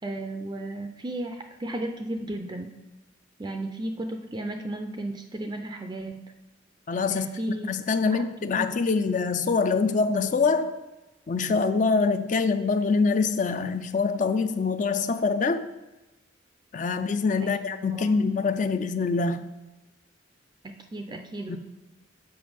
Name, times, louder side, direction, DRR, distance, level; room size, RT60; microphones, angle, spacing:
voice 1, 0.0-2.7 3.4-6.2 7.1-7.7 8.1-8.7 17.4-17.5 17.9-18.1 20.6-21.6, right 1 dB, 20° right, 5 dB, 0.4 m, -34 dB
voice 2, 6.9-7.3 7.6-10.7 11.3-15.7 16.7-19.4 21.5-21.6, left 4 dB, 40° left, 10 dB, 0.4 m, -24 dB
7.1 x 5.6 x 5.0 m, 1.1 s
head